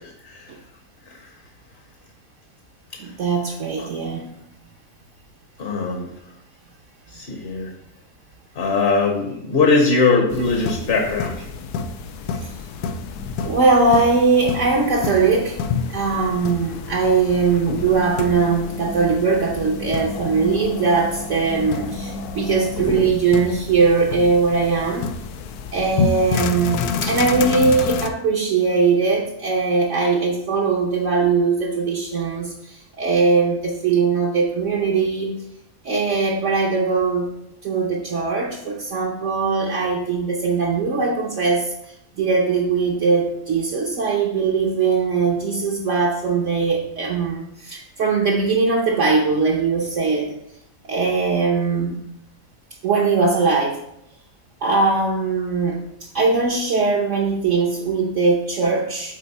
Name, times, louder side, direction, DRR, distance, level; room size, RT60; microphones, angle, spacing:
voice 1, 3.0-4.3 12.3-12.5 13.4-15.6 15.9-25.1 25.7-35.3 35.8-37.3 37.6-41.7 42.2-50.3 50.8-52.0 52.8-53.8 54.6-55.8 56.1-59.2, right 4 dB, 60° right, -2 dB, 1.1 m, -20 dB
voice 2, 5.6-6.1 7.1-7.7 8.5-11.4, left 4 dB, 45° left, 2 dB, 1.0 m, -21 dB
sound 1, 10.3-28.1, left 5 dB, 85° left, 1.1 m, -29 dB
7.8 x 4.1 x 4.2 m, 0.76 s
omnidirectional pair, 1.6 m